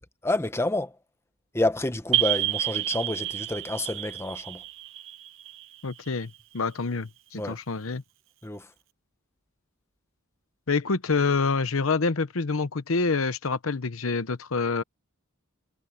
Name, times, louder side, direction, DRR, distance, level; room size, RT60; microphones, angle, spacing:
voice 1, 0.2-0.9 1.5-4.6 7.3-7.6 8.4-8.7, left 2 dB, 10° left, 1.2 m, -28 dB
sound 1, 2.1-6.6, right 16 dB, 65° right, 0.9 m, -30 dB
voice 2, 5.8-8.0 10.7-14.8, left 4 dB, 70° left, 0.9 m, -27 dB
head